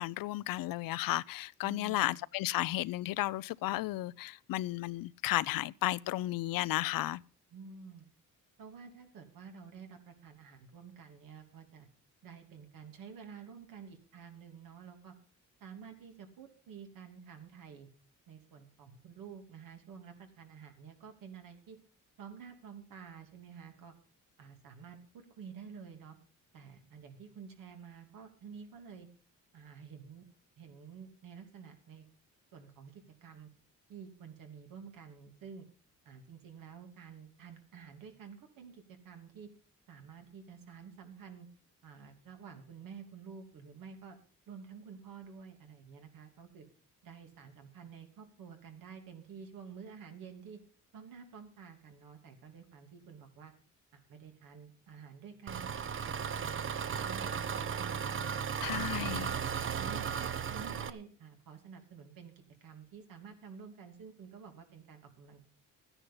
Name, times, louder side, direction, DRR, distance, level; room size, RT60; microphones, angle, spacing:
voice 1, 0.0-7.2 58.6-59.3, left 17 dB, 85° left, 0.6 m, -33 dB
voice 2, 1.6-2.2 7.5-8.1 8.6-11.9 12.2-15.1 15.6-17.9 18.3-21.8 22.2-23.9 24.4-26.2 26.5-29.1 29.5-30.3 30.6-32.1 32.5-33.5 33.9-35.6 36.0-39.5 39.9-41.5 41.8-44.2 44.5-46.7 47.0-50.6 50.9-53.5 53.9-55.7 56.0-58.4 58.7-59.5 59.8-65.4, right 6 dB, 80° right, 2.9 m, -50 dB
Engine, 55.5-60.9, right 7 dB, 40° right, 0.8 m, -35 dB
13.5 x 10.0 x 5.5 m
cardioid pair, 115°, 33 cm